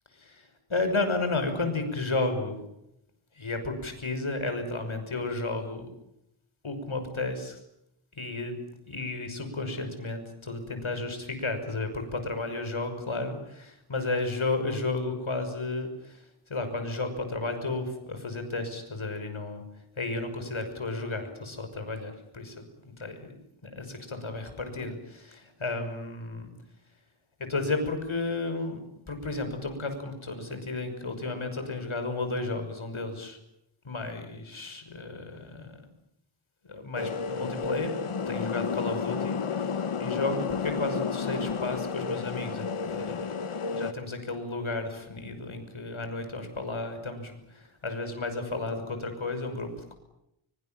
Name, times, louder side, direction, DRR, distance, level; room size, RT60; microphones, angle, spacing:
voice 1, 0.1-2.6 3.4-5.9 6.6-7.6 8.2-8.6 8.9-19.6 20.0-23.3 23.6-26.5 27.4-28.8 29.1-33.4 33.8-35.7 36.6-43.3 43.7-49.9, left 3 dB, 75° left, 7 dB, 6.0 m, -33 dB
sound 1, 36.9-43.9, left 5 dB, 90° left, 1.4 m, -31 dB
24.5 x 24.0 x 9.1 m, 0.81 s
wide cardioid pair, 80°, 49 cm